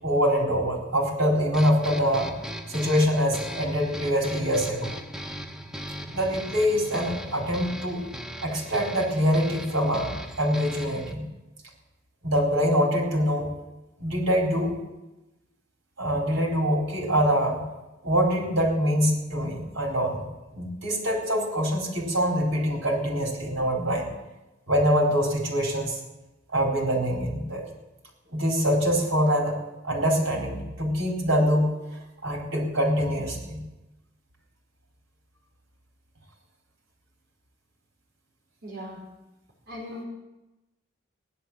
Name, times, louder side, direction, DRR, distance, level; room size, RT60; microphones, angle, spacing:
voice 1, 0.0-2.3 2.7-5.0 6.1-8.1 8.4-11.2 12.2-13.5 14.0-14.7 16.0-17.6 18.0-20.3 20.5-24.1 24.7-26.0 26.5-27.6 28.3-29.6 29.8-31.7 32.2-33.6, equal, 85° right, -1 dB, 4.4 m, -24 dB
sound 1, 1.5-11.1, equal, 5° right, 1.0 m, -38 dB
voice 2, 38.6-39.0 39.7-40.0, equal, 50° right, -5 dB, 5.2 m, -38 dB
16.5 x 11.5 x 7.6 m, 1.0 s
head